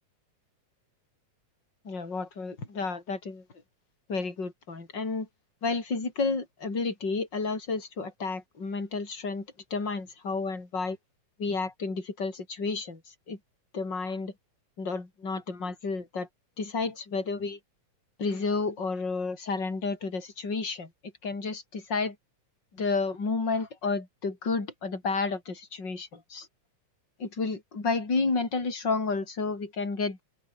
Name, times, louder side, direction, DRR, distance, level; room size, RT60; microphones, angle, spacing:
voice 1, 1.8-3.4 4.1-5.3 5.6-11.0 11.4-13.0 13.3-13.4 13.7-14.3 14.8-16.3 16.6-17.6 18.2-20.9 21.2-22.2 22.7-26.5 27.2-30.2, left 4 dB, 35° left, 5.7 m, -31 dB
open air
omnidirectional pair, 3.3 m